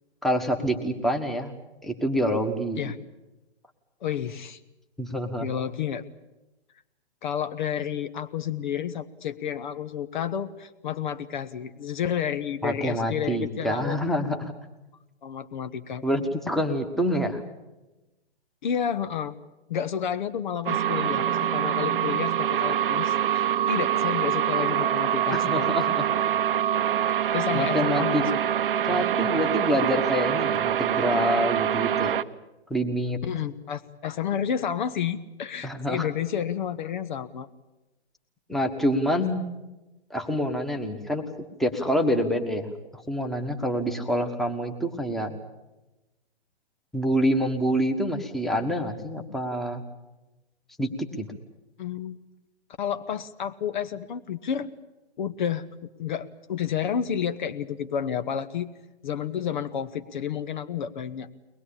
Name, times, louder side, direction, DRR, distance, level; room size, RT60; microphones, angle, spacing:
voice 1, 0.2-2.8 5.0-5.5 12.6-14.5 16.0-17.4 25.3-26.0 27.5-28.2 28.8-32.2 32.7-33.2 35.6-36.1 38.5-39.5 40.1-41.2 41.6-45.4 46.9-49.8 50.8-51.3, equal, ahead, 4 dB, 1.4 m, -26 dB
voice 2, 4.0-4.6 5.4-6.0 7.2-14.0 15.2-16.0 18.6-19.3 19.7-25.7 27.1-28.2 28.9-29.1 33.2-37.5 51.8-52.2 52.8-54.7 55.2-55.7 56.0-58.7 59.0-61.3, left 8 dB, 45° left, 11 dB, 1.0 m, -30 dB
sound 1, 20.7-32.2, right 10 dB, 55° right, 0.9 m, -25 dB
22.5 x 20.0 x 8.6 m, 1.0 s
hypercardioid pair, 135°, 33 cm